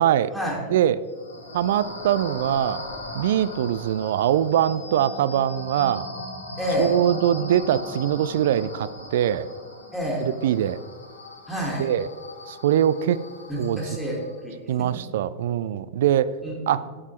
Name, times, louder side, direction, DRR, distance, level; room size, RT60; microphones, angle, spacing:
voice 1, 0.0-0.3 0.7-1.0 1.5-2.8 3.1-6.1 6.8-9.5 10.2-10.8 11.8-12.1 12.5-13.2 13.6-13.8 14.7-16.3 16.7-16.9, right 10 dB, 55° right, 17 dB, 0.3 m, -22 dB
sound 1, 1.0-14.4, left 1 dB, 75° left, 1.3 m, -39 dB
voice 2, 6.6-6.9 9.9-10.3 11.5-11.9 13.5-14.9 16.4-16.5 16.8-16.9, equal, 5° left, -3 dB, 1.7 m, -29 dB
9.6 x 7.2 x 3.1 m, 1.5 s
figure-of-eight pair, 90°, 0 cm